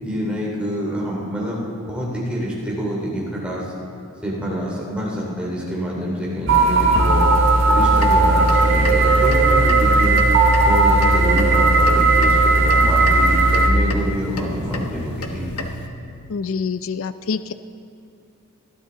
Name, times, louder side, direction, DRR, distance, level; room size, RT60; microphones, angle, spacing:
voice 1, 0.0-3.7 4.2-7.3 7.7-10.2 10.6-15.5, equal, 5° right, -5 dB, 2.8 m, -27 dB
sound 1, 6.5-13.7, right 2 dB, 60° right, 1.5 m, -16 dB
sound 2, 7.8-15.9, left 1 dB, 90° left, 1.1 m, -31 dB
voice 2, 16.3-17.5, left 5 dB, 65° left, 12 dB, 0.4 m, -26 dB
20.0 x 12.5 x 3.9 m, 2.5 s
head